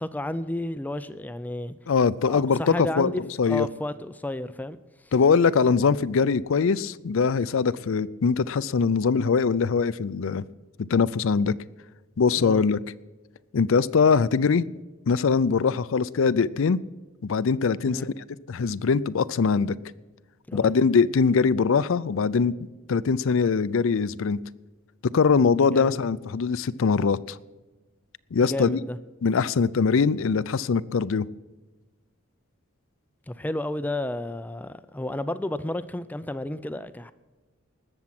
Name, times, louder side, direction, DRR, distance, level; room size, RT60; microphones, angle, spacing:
voice 1, 0.0-1.8 2.3-5.1 12.4-12.6 17.9-18.0 20.5-20.7 25.7-26.0 28.4-29.0 33.3-37.1, left 1 dB, 10° left, 0.4 m, -32 dB
voice 2, 1.9-3.1 3.4-3.7 5.1-10.4 10.8-11.5 12.2-12.8 13.5-14.7 15.1-16.8 17.2-18.1 18.5-19.8 20.5-22.5 22.9-24.4 25.0-27.4 28.3-28.8 29.2-31.3, left 5 dB, 70° left, 0.5 m, -22 dB
19.5 x 7.2 x 5.9 m
head